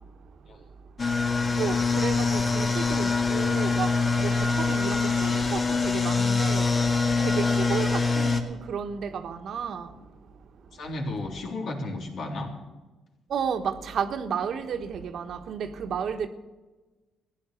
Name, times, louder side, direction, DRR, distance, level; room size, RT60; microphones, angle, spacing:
sound 1, 1.0-8.4, left 4 dB, 40° left, 1.9 m, -24 dB
voice 1, 1.6-3.9 4.2-4.3 4.6-6.7 7.2-9.9 13.3-16.3, right 7 dB, 65° right, 1.3 m, -32 dB
voice 2, 10.7-12.5, left 2 dB, 65° left, 3.6 m, -33 dB
14.5 x 10.5 x 7.0 m
cardioid pair, 90°, 0 cm